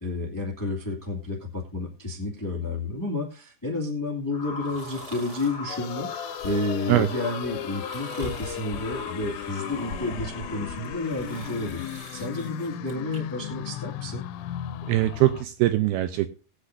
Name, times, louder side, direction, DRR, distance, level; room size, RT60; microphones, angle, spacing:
voice 1, 0.0-14.2, left 2 dB, 10° left, 0 dB, 1.1 m, -31 dB
sound 1, 4.3-12.4, left 3 dB, 40° left, 1.5 m, -39 dB
sound 2, 4.6-5.6 6.2-6.9 7.6-8.7 9.3-10.2 10.8-13.2 13.6-13.7, right 1 dB, 30° right, 2.7 m, -47 dB
sound 3, 5.7-15.5, left 12 dB, 85° left, 2.9 m, -36 dB
voice 2, 14.9-16.3, right 15 dB, 80° right, 10 dB, 2.4 m, -22 dB
20.0 x 8.6 x 2.7 m, 0.35 s
omnidirectional pair, 5.0 m